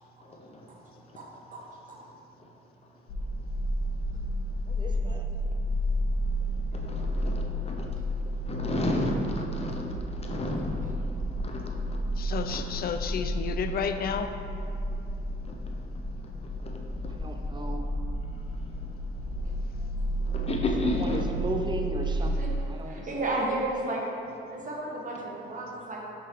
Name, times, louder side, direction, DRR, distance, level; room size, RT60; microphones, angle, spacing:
sound 1, 3.1-22.2, equal, 75° left, 1.1 m, -32 dB
voice 1, 4.7-5.3 17.1-17.8 20.8-22.4 22.7-23.2, right 2 dB, 25° right, 4 dB, 0.6 m, -35 dB
voice 2, 6.8-7.9 8.5-9.9 10.1-10.8 11.4-12.0 12.5-12.6 20.2-21.4 24.9-25.0, left 1 dB, 30° left, 1 dB, 0.8 m, -31 dB
voice 3, 12.2-14.3, left 7 dB, 50° left, 8 dB, 0.4 m, -31 dB
voice 4, 22.2-22.5 22.8-24.0 24.5-26.1, right 2 dB, 40° right, -2 dB, 1.3 m, -33 dB
5.7 x 3.8 x 4.6 m, 2.6 s
cardioid pair, 90°, 20 cm